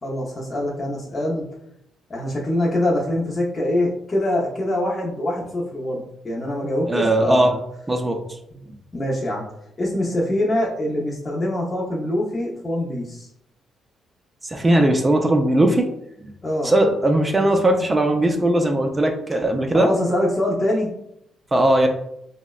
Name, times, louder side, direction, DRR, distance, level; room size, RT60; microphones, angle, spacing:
voice 1, 0.0-1.4 2.1-7.6 8.9-9.4 9.8-13.3 16.4-16.7 19.7-20.9, left 1 dB, 25° left, -4 dB, 0.6 m, -24 dB
voice 2, 6.9-7.5 7.9-8.2 14.4-15.9 16.2-16.3 16.6-19.9 21.5-21.9, right 1 dB, 20° right, 4 dB, 0.4 m, -18 dB
3.8 x 2.1 x 2.3 m, 0.78 s
cardioid pair, 90°, 0 cm